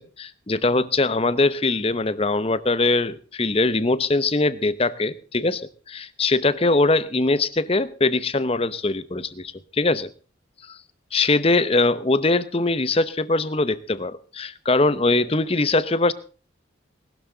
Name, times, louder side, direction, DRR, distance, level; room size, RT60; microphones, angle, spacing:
voice 1, 0.0-10.1 10.7-10.8 11.1-16.1, left 2 dB, 30° left, 15 dB, 0.8 m, -22 dB
20.0 x 12.5 x 3.9 m, 0.37 s
head